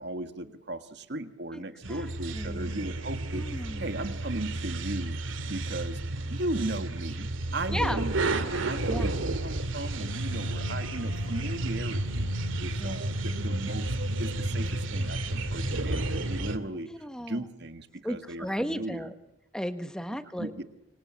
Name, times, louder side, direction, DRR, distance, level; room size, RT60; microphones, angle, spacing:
voice 1, 0.0-3.4 3.8-5.2 5.5-6.0 6.3-16.9 17.3-19.0 20.4-20.6, right 1 dB, 55° right, 9 dB, 1.7 m, -37 dB
sound 1, 1.8-16.6, right 2 dB, 85° right, 2.3 m, -31 dB
voice 2, 1.9-2.9 3.3-3.9 7.7-8.0 8.9-9.1 12.8-13.0 16.9-17.4 18.0-19.1 19.5-20.5, equal, 5° left, 9 dB, 1.5 m, -35 dB
26.5 x 24.5 x 7.6 m, 0.87 s
head